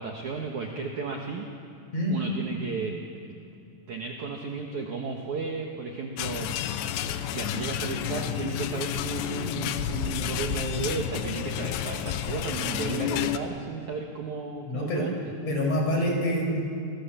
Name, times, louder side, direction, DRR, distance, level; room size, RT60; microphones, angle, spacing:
voice 1, 0.0-1.5 2.1-3.0 3.3-3.4 3.9-6.5 7.3-15.3, right 4 dB, 60° right, 1 dB, 2.2 m, -34 dB
sound 1, 6.2-13.4, left 10 dB, 75° left, 2.9 m, -30 dB
voice 2, 14.7-15.1 15.5-16.6, equal, 35° left, 0 dB, 6.4 m, -26 dB
28.0 x 20.5 x 7.4 m, 2.7 s
omnidirectional pair, 5.2 m